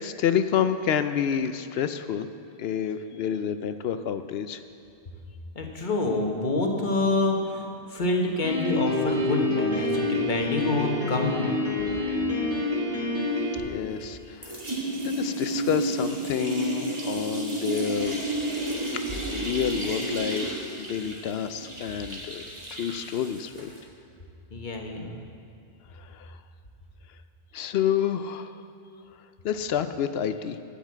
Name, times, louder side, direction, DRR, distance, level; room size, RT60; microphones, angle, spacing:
voice 1, 0.0-2.3 2.6-4.6 13.6-14.6 15.0-18.2 18.9-19.0 19.3-22.4 22.7-23.7 25.9-26.4 27.5-28.6 29.4-30.6, left 8 dB, 70° left, 10 dB, 0.8 m, -29 dB
voice 2, 5.5-11.5 24.5-25.1, left 2 dB, 45° left, 2 dB, 1.3 m, -27 dB
Piano, 8.4-13.6, left 2 dB, 55° right, 2.7 m, -27 dB
sound 1, 13.6-14.2 14.4-23.8, right 2 dB, 25° right, 1.9 m, -31 dB
12.0 x 5.7 x 8.3 m, 2.6 s
omnidirectional pair, 1.1 m